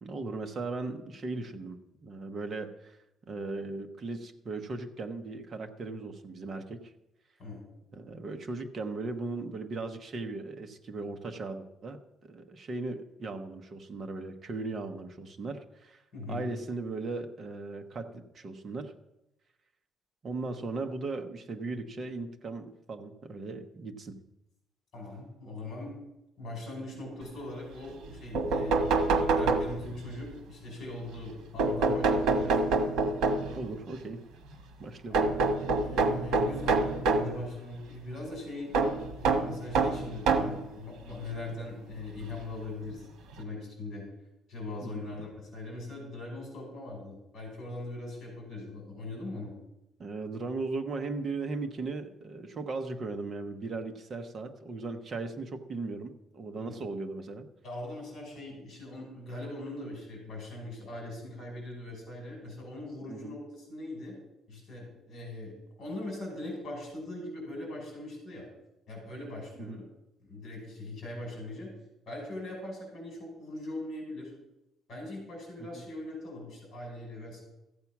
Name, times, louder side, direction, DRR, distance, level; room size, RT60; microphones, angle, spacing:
voice 1, 0.0-3.0 3.3-6.9 7.9-16.0 16.3-18.9 20.2-24.2 33.5-34.2 34.8-35.2 44.8-45.1 50.0-57.5 63.1-63.4 69.6-69.8 75.7-75.8, right 3 dB, 30° right, 6 dB, 1.0 m, -37 dB
voice 2, 16.1-16.5 24.9-26.0 26.4-28.8 29.1-32.6 35.1-35.3 35.6-43.1 43.3-44.1 44.5-49.5 56.6-56.8 57.6-64.1 64.5-68.5 68.9-69.8 70.2-71.7 72.1-74.3 74.9-77.4, left 2 dB, 40° left, 0 dB, 5.5 m, -41 dB
sound 1, 28.0-28.1 28.3-30.1 31.6-33.7 35.1-37.4 38.7-40.6 41.5-41.6 42.9-43.0 43.3-43.4, right 3 dB, 75° right, 1.4 m, -26 dB
14.0 x 8.2 x 6.0 m, 0.89 s
cardioid pair, 175°, 0 cm